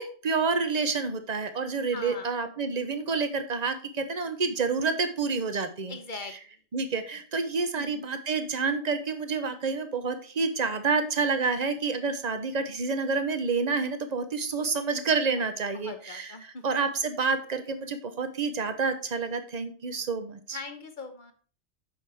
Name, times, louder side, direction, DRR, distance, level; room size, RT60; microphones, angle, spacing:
voice 1, 0.0-5.9 6.7-16.3 16.6-20.6, right 4 dB, 35° right, 9 dB, 0.9 m, -28 dB
voice 2, 1.9-2.3 5.9-6.3 7.8-8.1 15.4-15.5 15.7-16.8 20.5-21.3, left 3 dB, 45° left, 8 dB, 1.0 m, -41 dB
8.4 x 6.3 x 3.5 m, 0.41 s
omnidirectional pair, 1.3 m